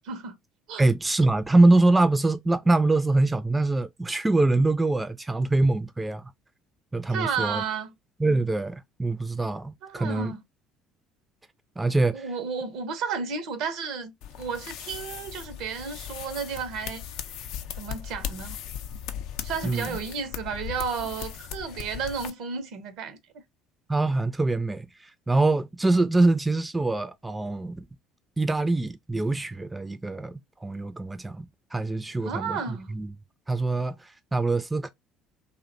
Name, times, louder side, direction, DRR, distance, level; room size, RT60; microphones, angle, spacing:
voice 1, 0.8-6.3 6.9-7.6 8.2-10.3 11.8-12.3 19.6-20.0 23.9-27.9 28.4-33.1 33.5-34.9, right 2 dB, 15° right, 0.3 m, -24 dB
voice 2, 7.1-7.9 9.8-10.4 12.1-17.0 17.8-18.6 19.4-23.2 32.2-32.9, right 6 dB, 65° right, 0.6 m, -32 dB
sound 1, 14.2-22.3, left 9 dB, 65° left, 0.3 m, -38 dB
2.5 x 2.1 x 2.5 m
hypercardioid pair, 60°, 0 cm